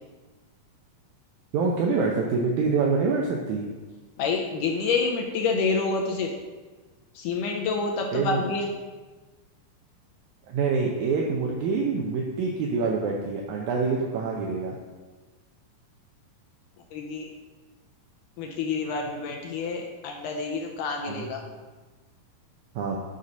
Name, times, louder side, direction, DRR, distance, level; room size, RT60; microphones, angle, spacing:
voice 1, 1.5-3.7 8.1-8.5 10.5-14.7 21.1-21.3 22.8-23.0, right 4 dB, 80° right, -1 dB, 1.7 m, -26 dB
voice 2, 4.2-6.3 7.2-8.7 16.9-17.3 18.4-21.4, left 4 dB, 80° left, 2 dB, 2.0 m, -28 dB
7.9 x 4.1 x 5.2 m, 1.3 s
omnidirectional pair, 4.2 m